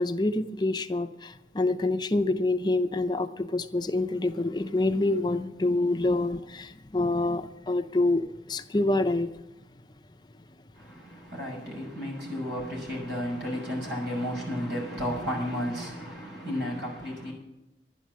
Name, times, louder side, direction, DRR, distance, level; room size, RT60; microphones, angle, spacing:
voice 1, 0.0-9.3, left 2 dB, 25° left, 0.6 m, -27 dB
voice 2, 10.7-17.3, equal, 85° right, 6.4 m, -33 dB
12.0 x 10.5 x 7.4 m
head